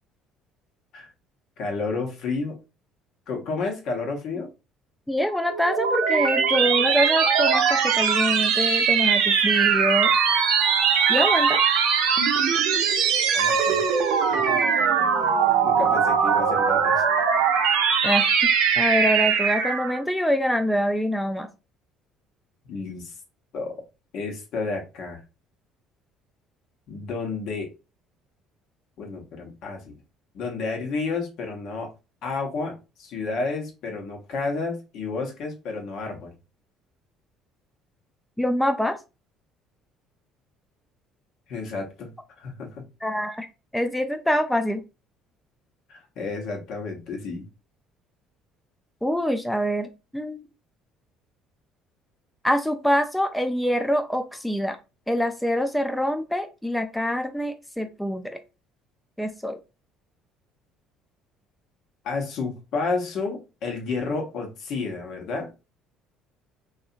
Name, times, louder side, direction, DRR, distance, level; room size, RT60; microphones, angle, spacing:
voice 1, 1.6-2.6 3.3-4.5 13.3-13.9 14.3-14.6 15.6-17.0 22.6-23.1 23.5-23.8 24.1-25.2 26.9-27.7 29.0-30.0 30.3-31.9 32.2-36.3 41.5-42.1 42.4-42.8 45.9-47.5 62.0-65.5, left 4 dB, 65° left, 0.9 m, -31 dB
voice 2, 5.1-10.1 11.1-11.6 18.0-21.5 38.4-39.0 43.0-43.5 43.7-44.8 49.0-50.4 52.4-54.8 55.1-58.4 59.2-59.6, equal, 5° left, 0.3 m, -25 dB
sound 1, 5.3-20.0, right 6 dB, 80° right, 0.5 m, -21 dB
2.7 x 2.4 x 2.4 m
supercardioid pair, 85°, 0 cm